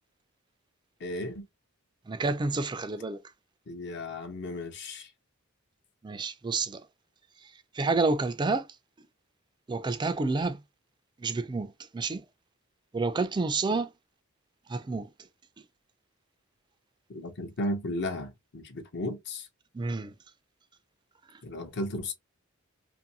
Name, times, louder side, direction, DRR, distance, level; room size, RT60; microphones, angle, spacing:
voice 1, 1.0-1.5 3.7-5.1 17.1-19.5 21.4-22.1, left 1 dB, 55° left, 0.7 m, -35 dB
voice 2, 2.1-3.2 6.0-6.8 7.4-8.7 9.7-10.6 11.2-12.2 12.9-13.9 14.7-15.1 19.7-20.1, right 3 dB, 20° right, 0.3 m, -29 dB
2.6 x 2.6 x 2.7 m
head